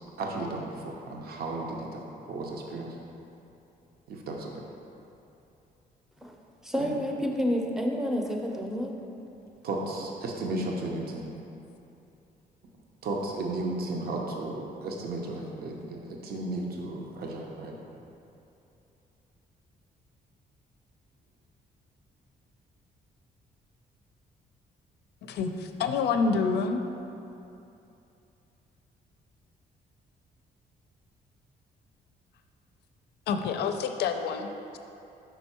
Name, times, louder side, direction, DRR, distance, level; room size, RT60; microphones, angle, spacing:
voice 1, 0.2-3.0 4.1-4.6 6.8-6.9 9.6-11.3 13.0-17.8, right 2 dB, 65° right, 0 dB, 0.8 m, -34 dB
voice 2, 6.6-8.9, equal, 5° right, 1 dB, 0.6 m, -29 dB
voice 3, 25.2-26.8 33.3-34.8, left 5 dB, 85° left, 6 dB, 0.4 m, -28 dB
5.7 x 4.4 x 4.3 m, 2.8 s
cardioid pair, 120°, 17 cm